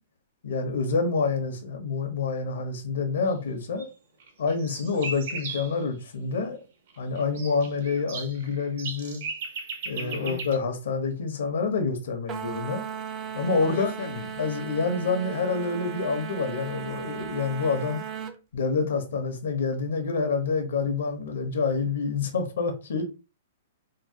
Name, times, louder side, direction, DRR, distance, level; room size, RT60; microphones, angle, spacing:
voice 1, 0.4-3.9 4.4-6.6 7.0-9.2 9.8-12.8 13.3-13.9 14.4-18.0 18.5-23.0, left 4 dB, 80° left, 0.8 m, -27 dB
sound 1, 3.8-3.9 4.2-5.7 6.9-10.6, right 4 dB, 60° right, 0.6 m, -36 dB
voice 2, 9.9-10.4 13.6-14.3, left 7 dB, 60° left, 0.4 m, -35 dB
sound 2, 12.3-18.4, right 8 dB, 25° right, 0.3 m, -36 dB
3.0 x 2.2 x 2.7 m
hypercardioid pair, 155°, 0 cm